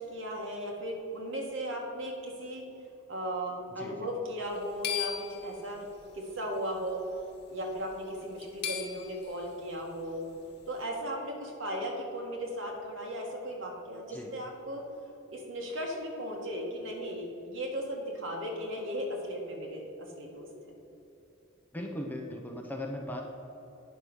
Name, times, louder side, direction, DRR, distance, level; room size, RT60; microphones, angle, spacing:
voice 1, 0.0-2.7 3.1-5.9 6.1-7.1 7.5-10.3 10.7-14.9 15.3-20.5, equal, 65° right, 0 dB, 1.8 m, -36 dB
sound 1, 4.4-6.2 7.1-7.4 7.7-7.8 8.2-9.4, left 8 dB, 50° left, 1.2 m, -37 dB
voice 2, 21.7-23.2, left 1 dB, 10° left, 0 dB, 0.7 m, -38 dB
9.8 x 5.3 x 6.2 m, 3.0 s
head